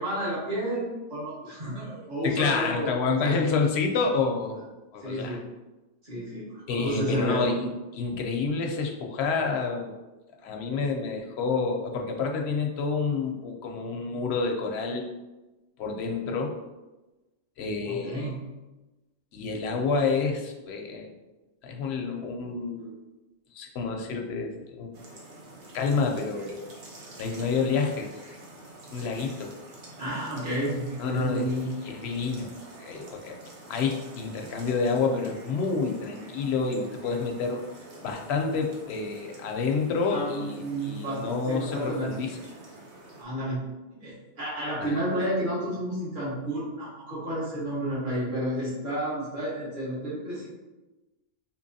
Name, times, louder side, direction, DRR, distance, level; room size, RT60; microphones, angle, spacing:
voice 1, 0.0-2.9 3.2-3.5 5.0-5.4 6.0-7.6 17.8-18.5 30.0-31.6 40.1-42.4 43.2-43.6 44.0-50.5, right 1 dB, 45° right, -8 dB, 1.6 m, -31 dB
voice 2, 2.2-4.6 4.9-5.4 6.7-10.0 10.4-15.0 15.8-16.5 17.6-18.3 19.3-21.1 21.6-22.9 23.5-24.9 25.7-26.6 27.2-28.3 28.9-29.5 31.0-31.5 31.8-32.5 32.8-33.4 33.7-37.7 38.0-42.4 44.8-45.2, left 4 dB, 70° left, 2 dB, 0.8 m, -28 dB
sound 1, 24.9-43.2, right 2 dB, 80° right, 1.1 m, -47 dB
4.5 x 2.9 x 2.7 m, 1.1 s
omnidirectional pair, 1.2 m